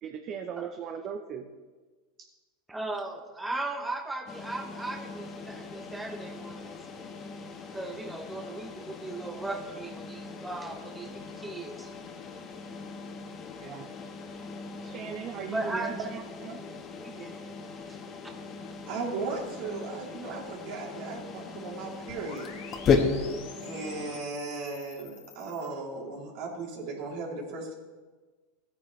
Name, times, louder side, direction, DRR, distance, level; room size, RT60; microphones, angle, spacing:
voice 1, 0.0-1.5 13.6-13.9 14.8-16.6 20.3-20.4, right 7 dB, 40° right, 5 dB, 0.8 m, -38 dB
voice 2, 2.7-6.8 7.7-11.9 15.5-16.1 16.6-17.4 17.9-18.0, right 2 dB, 10° right, 3 dB, 1.0 m, -37 dB
sound 1, 4.3-24.2, left 5 dB, 35° left, 1.5 m, -36 dB
voice 3, 18.9-22.5 23.6-27.7, right 3 dB, 65° right, -2 dB, 3.3 m, -36 dB
sound 2, 22.1-25.7, left 6 dB, 80° left, 3.3 m, -48 dB
16.0 x 9.6 x 3.3 m, 1.3 s
supercardioid pair, 115°, 0 cm